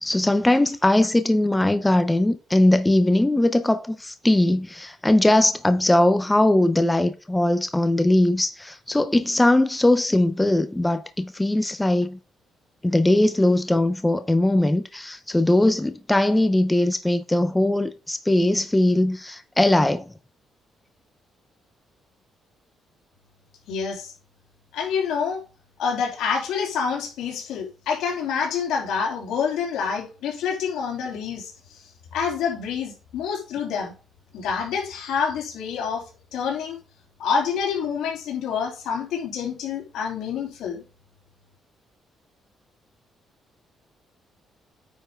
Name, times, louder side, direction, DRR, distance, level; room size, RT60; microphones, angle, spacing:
voice 1, 0.0-12.2 12.8-20.1, left 1 dB, 10° left, 0.7 m, -20 dB
voice 2, 23.7-24.1 24.7-25.4 25.8-31.8 32.1-33.9 34.3-36.0 36.3-36.8 37.2-40.8, left 6 dB, 85° left, 2.9 m, -27 dB
9.4 x 5.4 x 3.5 m
cardioid pair, 90°, 0 cm